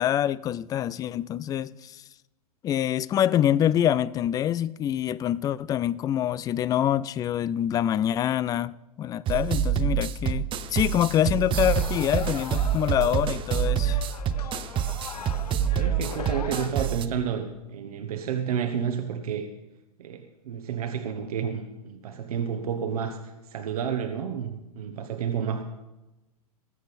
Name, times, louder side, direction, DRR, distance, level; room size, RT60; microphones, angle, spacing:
voice 1, 0.0-2.0 2.6-14.0, left 11 dB, 20° left, 0.3 m, -25 dB
sound 1, 9.3-17.1, right 9 dB, 25° right, 0.7 m, -26 dB
sound 2, 11.5-16.9, left 7 dB, 85° left, 0.7 m, -40 dB
voice 2, 15.8-19.5 20.0-25.6, right 7 dB, 75° right, 1.1 m, -31 dB
20.5 x 7.9 x 4.2 m
hypercardioid pair, 110°, 19 cm